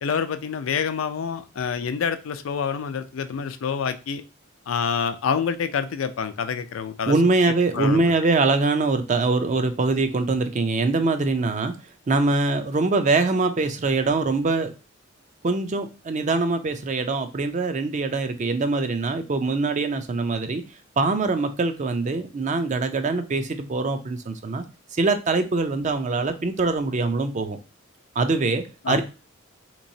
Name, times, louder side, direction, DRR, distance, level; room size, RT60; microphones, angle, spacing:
voice 1, 0.0-4.2 4.7-7.2 7.4-8.1 28.8-29.0, left 6 dB, 85° left, 0.4 m, -27 dB
voice 2, 7.1-11.7 12.1-14.7 15.4-20.6 21.0-24.6 25.0-27.6 28.2-29.0, right 3 dB, 35° right, 0.4 m, -23 dB
3.7 x 3.0 x 2.6 m
head